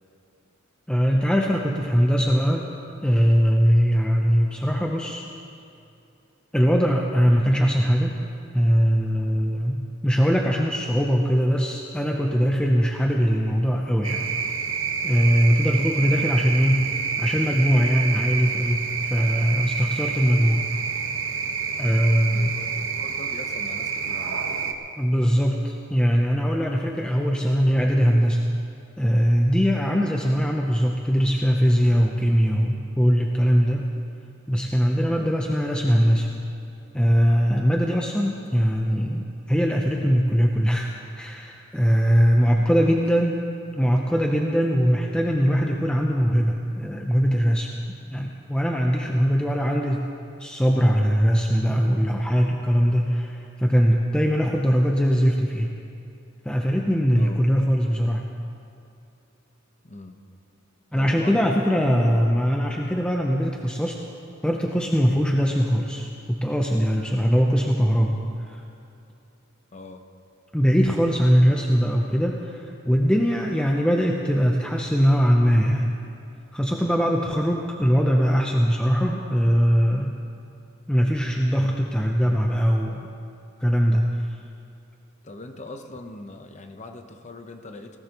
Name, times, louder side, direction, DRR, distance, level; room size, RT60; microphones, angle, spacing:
voice 1, 0.9-2.7 3.0-5.2 6.5-8.1 8.5-14.2 15.0-18.8 19.1-20.6 21.8-22.5 25.0-28.4 29.0-33.9 34.5-36.3 36.9-43.4 43.8-47.7 48.1-50.1 50.4-55.7 56.4-58.2 60.9-64.0 64.4-68.6 70.5-75.9 76.5-80.2 80.9-83.1 83.6-84.4, equal, 5° left, 0 dB, 0.6 m, -21 dB
sound 1, 14.0-24.7, right 6 dB, 80° right, 1.0 m, -28 dB
voice 2, 22.3-24.5 35.1-35.3 42.5-43.0 49.1-49.2 57.2-57.4 59.8-60.2 60.9-61.7 69.7-70.1 77.3-77.4 85.2-88.0, left 2 dB, 35° left, 5 dB, 0.9 m, -41 dB
19.5 x 18.0 x 3.0 m, 2.6 s
head